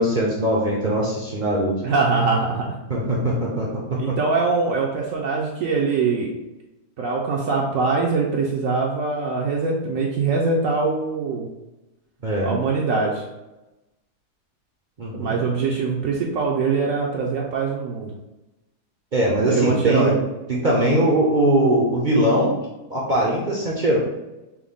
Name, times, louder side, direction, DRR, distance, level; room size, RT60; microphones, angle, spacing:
voice 1, 0.0-1.8 2.9-4.1 12.2-12.5 15.0-15.4 19.1-20.2 20.5-22.6 22.9-24.0, right 1 dB, 50° right, -5 dB, 0.5 m, -21 dB
voice 2, 1.8-2.7 4.0-6.3 7.0-11.5 12.4-13.2 15.1-18.2 19.5-20.2, right 4 dB, 70° right, -2 dB, 0.9 m, -23 dB
6.0 x 2.1 x 3.5 m, 1.0 s
omnidirectional pair, 1.7 m